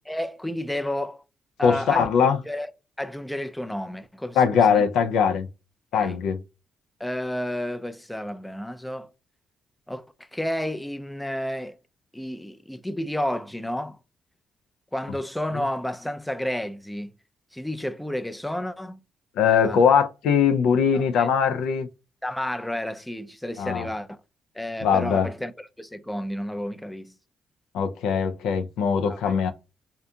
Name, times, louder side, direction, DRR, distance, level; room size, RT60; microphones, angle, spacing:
voice 1, 0.1-1.2 1.6-2.1 2.5-2.7 3.0-4.8 5.9-6.2 7.0-9.1 9.9-10.0 10.3-11.8 12.1-14.0 14.9-17.1 17.5-19.0 19.6-19.8 20.9-21.3 22.2-24.1 24.6-25.5 25.8-27.1 29.1-29.3, left 1 dB, 5° left, 0.3 m, -31 dB
voice 2, 1.6-2.4 4.4-5.5 5.9-6.4 19.4-21.9 23.6-23.9 24.8-25.3 27.7-29.5, left 7 dB, 85° left, 0.3 m, -21 dB
2.7 x 2.5 x 2.2 m
cardioid pair, 90°, 0 cm